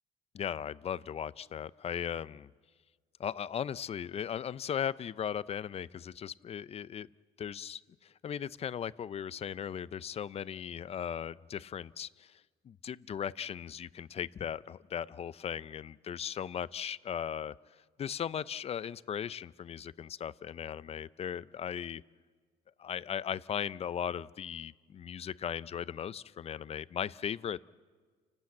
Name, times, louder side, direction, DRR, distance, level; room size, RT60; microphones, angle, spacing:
voice 1, 0.3-2.5 3.2-7.1 7.4-17.5 18.0-22.0 22.8-27.6, left 8 dB, 35° left, 18 dB, 0.5 m, -37 dB
29.5 x 12.0 x 8.5 m, 1.5 s
cardioid pair, 110°, 17 cm